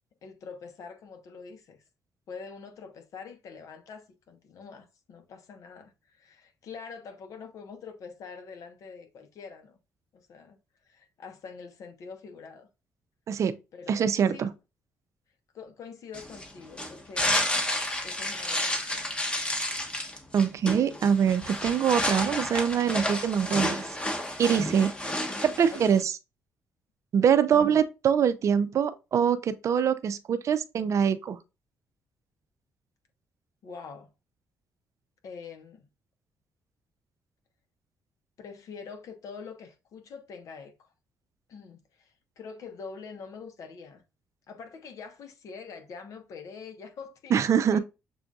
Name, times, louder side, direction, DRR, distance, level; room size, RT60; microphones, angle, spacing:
voice 1, 0.2-1.8 2.3-9.8 10.1-10.6 10.9-12.7 13.7-14.5 15.5-17.4 18.0-19.1 25.7-26.0 33.6-34.1 35.2-35.9 38.4-40.9 41.5-44.0 44.5-47.8, left 5 dB, 65° left, 1.0 m, -45 dB
voice 2, 13.9-14.5 20.3-23.8 24.4-24.9 25.4-26.1 27.1-31.4 47.3-47.8, right 8 dB, 60° right, 0.4 m, -24 dB
rub the paper mono, 16.1-26.0, left 1 dB, 20° left, 1.0 m, -31 dB
6.8 x 2.5 x 2.3 m
supercardioid pair, 65°, 6 cm